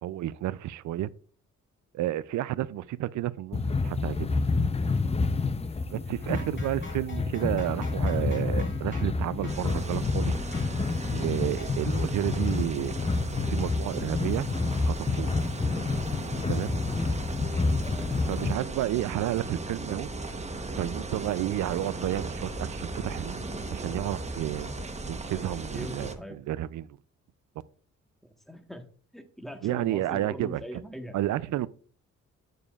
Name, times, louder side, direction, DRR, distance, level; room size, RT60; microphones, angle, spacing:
voice 1, 0.0-1.1 1.9-4.4 5.9-10.3 11.1-13.0 13.5-14.5 14.8-15.4 16.5-16.8 18.3-20.1 20.8-26.9 29.6-30.8 31.1-31.7, right 14 dB, 70° right, 0.5 m, -31 dB
sound 1, 3.5-18.5, left 3 dB, 20° left, 0.6 m, -29 dB
sound 2, 6.2-9.2 9.4-9.7 10.5-10.8 11.6-11.9, left 3 dB, 40° left, 3.3 m, -47 dB
sound 3, 9.5-26.1, right 2 dB, 20° right, 1.0 m, -37 dB
voice 2, 17.8-18.1 25.7-26.5 28.5-28.8 29.1-31.2, equal, ahead, 1.3 m, -41 dB
9.3 x 6.8 x 2.4 m
cardioid pair, 70°, 30 cm